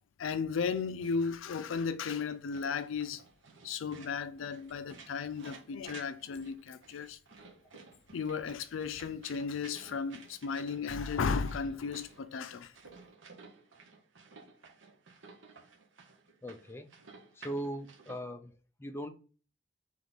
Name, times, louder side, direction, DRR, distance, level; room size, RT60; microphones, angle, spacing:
voice 1, 0.2-3.2 3.6-7.2 8.1-12.7, left 5 dB, 90° left, 0.4 m, -35 dB
sound 1, 0.7-18.2, right 4 dB, 80° right, 1.0 m, -55 dB
voice 2, 16.4-16.9 17.4-18.5 18.8-19.1, right 1 dB, 10° left, 0.4 m, -39 dB
3.5 x 3.1 x 3.9 m
head